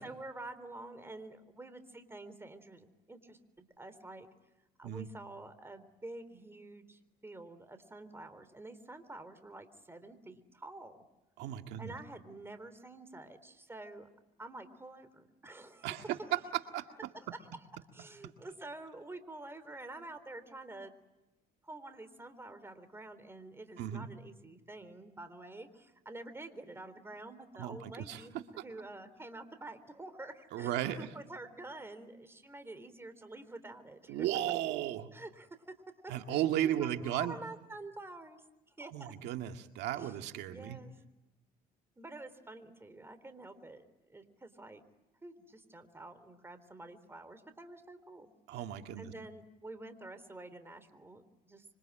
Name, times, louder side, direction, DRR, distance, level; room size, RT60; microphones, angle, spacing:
voice 1, 0.0-4.3 4.8-11.0 11.8-14.1 14.4-16.3 17.1-17.6 17.9-21.0 21.6-34.3 35.1-35.7 36.3-39.1 39.9-40.2 40.5-41.0 42.0-44.8 45.2-48.3 49.0-51.6, right 2 dB, 15° right, 11 dB, 3.8 m, -48 dB
voice 2, 11.4-11.9 15.8-16.4 16.7-16.8 23.8-24.1 27.6-28.2 30.5-31.1 34.1-35.1 36.1-37.4 38.9-40.8 48.5-49.1, right 12 dB, 85° right, 6 dB, 2.0 m, -35 dB
26.5 x 25.5 x 8.8 m, 1.0 s
cardioid pair, 110°, 17 cm